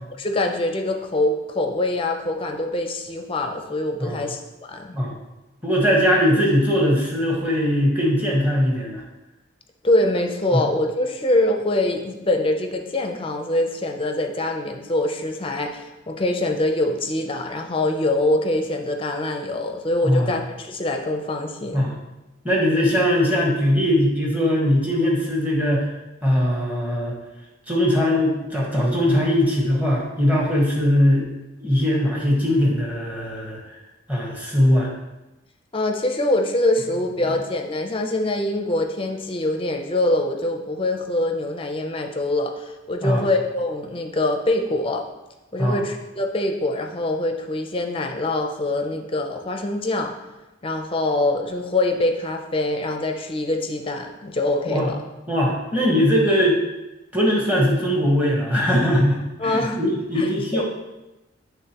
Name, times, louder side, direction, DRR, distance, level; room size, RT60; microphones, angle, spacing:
voice 1, 0.2-5.0 9.8-21.9 35.7-45.1 45.5-50.1 50.6-55.0 59.4-59.8 60.2-60.6, left 2 dB, 25° left, 4 dB, 0.5 m, -24 dB
voice 2, 5.6-9.0 10.5-10.6 20.0-20.3 21.7-21.9 22.4-25.9 26.2-27.1 27.7-31.3 31.6-33.6 34.1-34.9 43.0-43.2 45.6-45.8 54.7-54.9 55.3-56.5 57.1-60.6, equal, 10° right, -3 dB, 1.3 m, -20 dB
10.5 x 3.5 x 3.0 m, 1.0 s
head